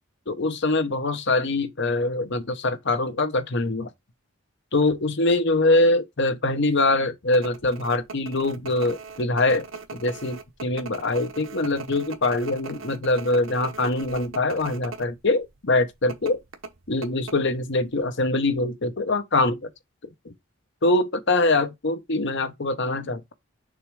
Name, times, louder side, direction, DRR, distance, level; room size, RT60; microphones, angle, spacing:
voice 1, 0.3-3.9 4.7-9.7 9.9-16.4 16.9-19.7 20.2-20.3 20.8-23.3, left 2 dB, 55° left, 1.0 m, -23 dB
sound 1, 7.3-15.1 15.4-15.5 16.1-17.8 18.0-18.1, right 4 dB, 65° right, 1.1 m, -39 dB
6.7 x 3.2 x 4.8 m
head